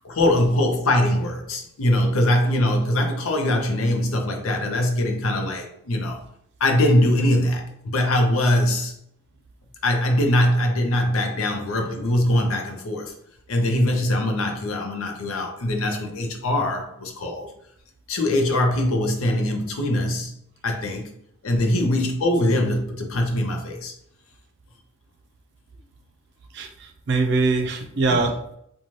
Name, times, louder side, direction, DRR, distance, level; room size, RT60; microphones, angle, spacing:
voice 1, 0.0-6.2 6.6-8.9 9.8-13.1 13.5-17.5 18.1-20.3 20.6-21.1 21.4-23.9 28.1-28.2, left 1 dB, 85° left, 3 dB, 0.6 m, -22 dB
voice 2, 26.5-28.5, right 3 dB, 55° right, 5 dB, 0.4 m, -23 dB
2.6 x 2.3 x 3.0 m, 0.72 s
head